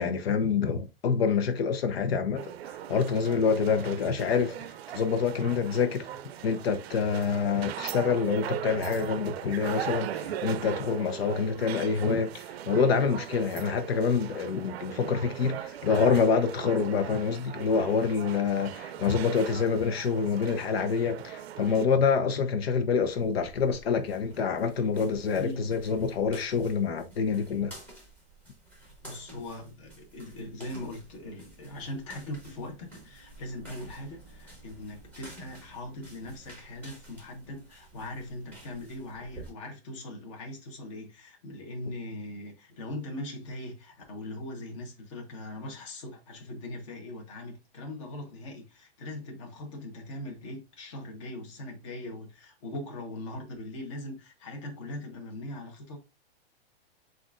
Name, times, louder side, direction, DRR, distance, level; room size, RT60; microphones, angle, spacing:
voice 1, 0.0-2.5 2.9-6.1 6.4-27.7, left 5 dB, 80° left, 0.8 m, -27 dB
sound 1, 2.4-21.9, right 11 dB, 90° right, 0.5 m, -39 dB
sound 2, 23.0-39.5, right 2 dB, 5° left, 1.1 m, -51 dB
voice 2, 25.3-25.7 28.8-56.0, left 1 dB, 30° left, 1.1 m, -40 dB
7.7 x 2.6 x 2.4 m
supercardioid pair, 180°, 30 cm